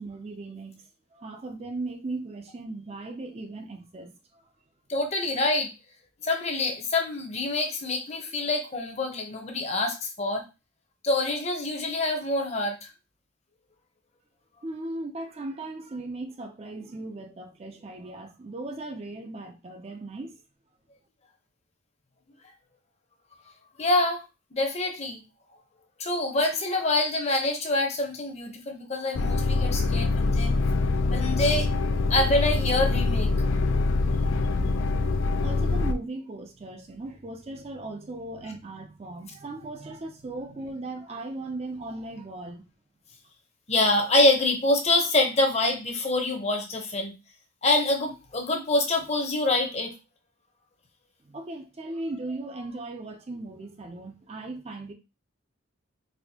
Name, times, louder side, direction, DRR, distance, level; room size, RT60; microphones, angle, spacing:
voice 1, 0.0-4.4 14.6-20.4 35.4-42.6 51.2-54.9, right 2 dB, 30° right, 0.4 m, -37 dB
voice 2, 4.9-5.7 6.2-10.4 11.0-12.8 23.8-24.2 24.5-25.2 26.0-30.5 31.1-31.7 32.1-33.3 34.0-34.1 43.7-47.1 47.6-49.9, left 2 dB, 35° left, 0.7 m, -26 dB
sound 1, 29.1-35.9, left 3 dB, 75° left, 0.4 m, -24 dB
4.1 x 2.5 x 2.7 m
head